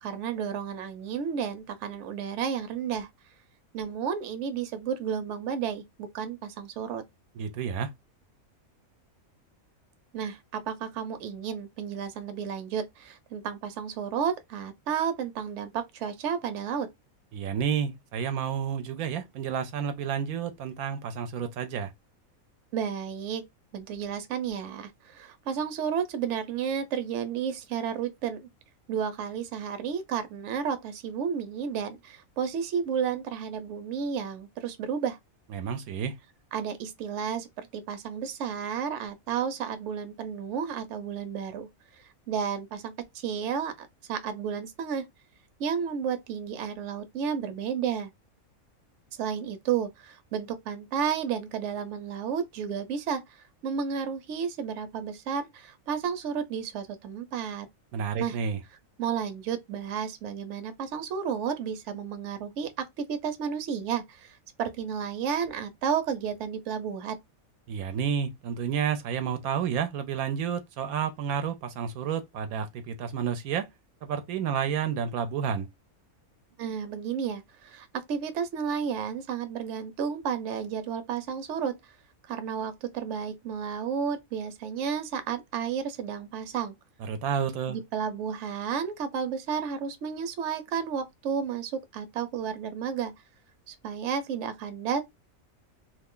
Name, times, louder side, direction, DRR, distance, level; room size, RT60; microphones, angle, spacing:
voice 1, 0.0-3.1 3.7-7.0 10.1-16.9 22.7-23.4 23.7-28.5 28.9-35.2 36.5-41.7 42.0-45.1 45.6-48.1 49.2-57.7 58.2-58.4 59.0-67.2 76.6-81.7 82.3-86.7 87.7-93.1 93.7-95.0, right 7 dB, 60° right, 0.9 m, -32 dB
voice 2, 7.4-7.9 17.3-21.9 35.5-36.2 57.9-58.6 67.7-73.7 74.0-75.7 87.0-87.8, right 7 dB, 85° right, 1.0 m, -30 dB
2.6 x 2.4 x 3.6 m
omnidirectional pair, 1.5 m